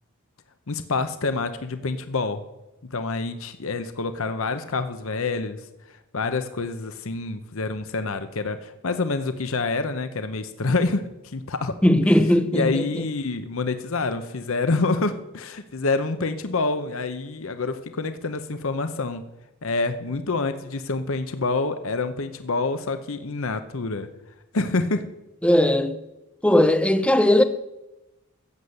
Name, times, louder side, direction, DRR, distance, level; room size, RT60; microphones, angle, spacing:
voice 1, 0.7-2.4 2.9-5.6 6.1-11.8 12.5-19.2 19.6-24.1 24.5-25.1, left 3 dB, 65° left, 0.8 m, -27 dB
voice 2, 11.8-13.0 25.4-26.0 26.4-27.4, left 1 dB, 5° left, 0.6 m, -18 dB
15.0 x 8.0 x 6.6 m
head